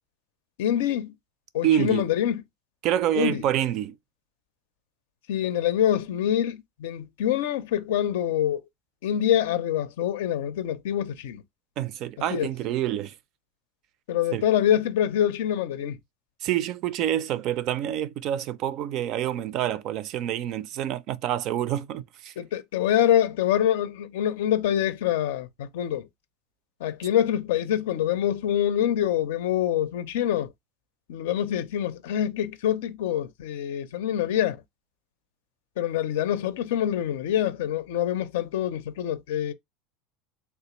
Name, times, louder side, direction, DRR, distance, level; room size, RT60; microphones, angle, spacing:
voice 1, 0.6-1.1 1.5-2.4 3.2-3.4 5.3-8.6 9.0-11.4 12.3-12.5 14.1-16.0 22.4-26.1 26.8-30.5 31.1-34.6 35.8-39.5, left 10 dB, 85° left, 0.5 m, -25 dB
voice 2, 1.6-2.0 2.8-4.0 11.8-13.1 14.3-14.4 16.4-22.3, right 11 dB, 50° right, 0.3 m, -27 dB
3.4 x 2.5 x 3.0 m
supercardioid pair, 125°, 0 cm